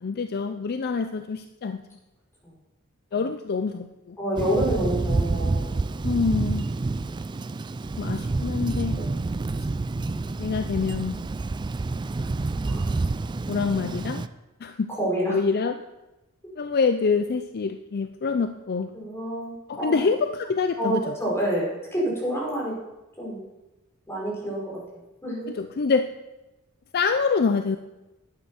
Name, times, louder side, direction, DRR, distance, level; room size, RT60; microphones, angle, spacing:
voice 1, 0.0-1.8 3.1-4.2 6.0-6.7 8.0-9.0 10.4-11.2 13.5-14.2 14.6-14.9 15.2-15.8 16.6-18.9 19.7-21.0 25.5-26.1 26.9-27.8, left 5 dB, 45° left, 8 dB, 0.5 m, -26 dB
voice 2, 4.2-5.8 8.9-9.0 12.6-12.8 15.0-15.4 18.9-20.1 20.8-22.8 23.2-23.4 24.1-24.8 25.2-25.5, right 1 dB, 10° left, -4 dB, 5.0 m, -28 dB
Thunder, 4.4-14.3, right 3 dB, 20° right, 0.3 m, -28 dB
11.5 x 8.7 x 5.7 m, 1.0 s
head